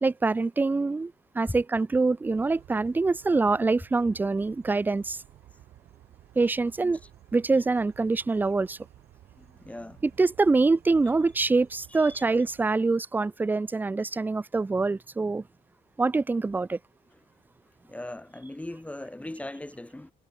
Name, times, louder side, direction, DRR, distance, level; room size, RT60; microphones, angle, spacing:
voice 1, 0.0-5.2 6.4-7.0 7.3-8.8 10.0-15.4 16.0-16.8, right 3 dB, 10° right, 0.4 m, -25 dB
sound 1, 2.2-12.7, right 13 dB, 70° right, 6.1 m, -54 dB
voice 2, 9.4-10.0 12.0-12.2 17.9-20.1, left 1 dB, 10° left, 2.2 m, -39 dB
cardioid pair, 110°, 17 cm